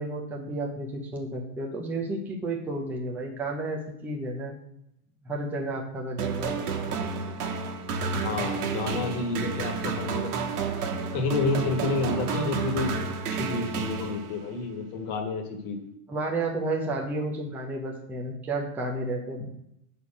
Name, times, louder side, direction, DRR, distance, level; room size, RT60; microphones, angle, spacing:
voice 1, 0.0-4.5 5.2-6.6 16.1-19.5, right 2 dB, 5° right, 0 dB, 0.4 m, -32 dB
sound 1, 6.2-14.6, right 5 dB, 75° right, 1.3 m, -31 dB
voice 2, 8.1-10.3 11.1-13.0 13.3-15.8, left 3 dB, 35° left, 4 dB, 1.5 m, -29 dB
6.7 x 4.3 x 5.9 m, 0.80 s
supercardioid pair, 145°, 46 cm